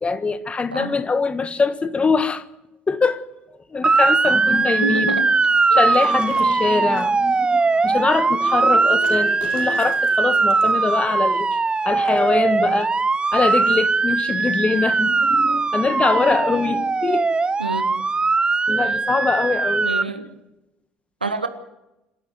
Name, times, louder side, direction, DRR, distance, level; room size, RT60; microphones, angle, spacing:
voice 1, 0.0-2.4 2.9-3.2 3.7-5.2 5.7-11.6 11.8-13.0 13.3-17.3 18.7-19.9, left 4 dB, 25° left, 1.5 m, -23 dB
Motor vehicle (road) / Siren, 3.8-20.0, right 4 dB, 20° right, 0.7 m, -20 dB
voice 2, 4.8-5.3 5.7-5.8 17.6-17.9 18.8-18.9 19.8-20.3 21.2-21.5, right 3 dB, 90° right, 1.3 m, -27 dB
sound 1, 5.9-7.1 9.0-10.9 11.8-12.4 13.4-13.5 14.3-14.4, left 3 dB, 70° left, 5.9 m, -41 dB
26.5 x 12.5 x 7.8 m
figure-of-eight pair, 60°, 5 cm